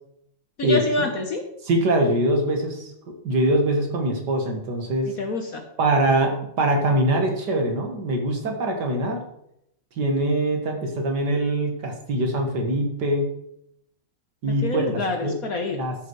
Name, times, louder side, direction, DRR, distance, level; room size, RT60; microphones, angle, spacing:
voice 1, 0.6-1.4 5.1-5.6 14.6-15.9, left 3 dB, 55° left, 4 dB, 1.2 m, -27 dB
voice 2, 1.6-5.1 5.8-9.2 10.0-13.3 14.4-15.3 15.7-16.0, right 1 dB, 55° right, 3 dB, 2.1 m, -23 dB
13.0 x 5.8 x 4.7 m, 0.77 s
omnidirectional pair, 2.3 m